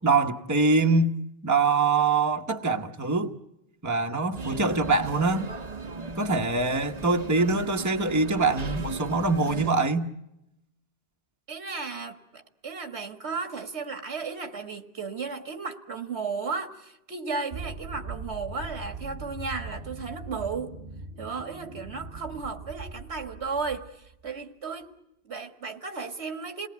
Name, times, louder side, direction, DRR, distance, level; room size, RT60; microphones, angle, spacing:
voice 1, 0.0-1.2 1.4-3.3 3.8-5.5 6.2-10.1, right 3 dB, 15° right, 1.2 m, -24 dB
sound 1, 4.3-9.7, right 3 dB, 40° right, 1.1 m, -37 dB
voice 2, 11.5-20.7 21.2-23.9 24.2-24.9 25.2-26.7, right 4 dB, 80° right, 2.0 m, -34 dB
sound 2, 17.5-24.3, right 3 dB, 65° right, 1.5 m, -40 dB
29.0 x 19.0 x 9.4 m
omnidirectional pair, 1.1 m